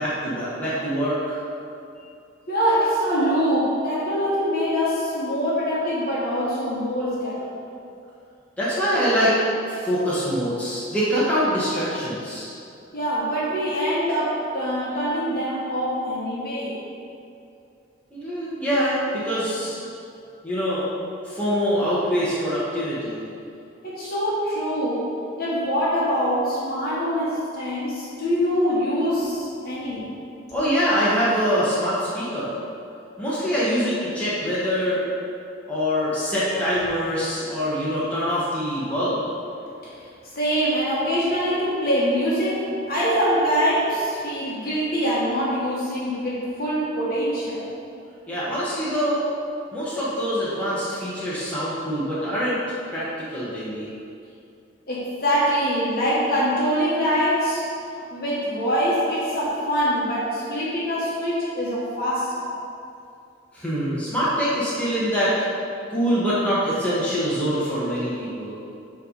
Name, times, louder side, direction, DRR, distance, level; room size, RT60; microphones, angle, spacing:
voice 1, 0.0-1.4 8.6-9.4 9.7-12.5 18.1-19.8 20.4-20.9 21.2-23.2 30.5-32.5 33.2-35.0 35.7-39.2 48.3-49.2 49.7-52.6 52.9-53.9 63.5-65.4 65.9-68.6, equal, 5° left, -10 dB, 1.2 m, -24 dB
voice 2, 2.5-7.5 12.9-16.8 23.8-25.1 25.4-30.0 36.0-36.2 37.4-37.6 39.8-40.0 40.3-47.7 54.9-57.6 58.1-62.5, equal, 50° left, -8 dB, 1.3 m, -24 dB
7.6 x 3.4 x 5.1 m, 2.5 s
head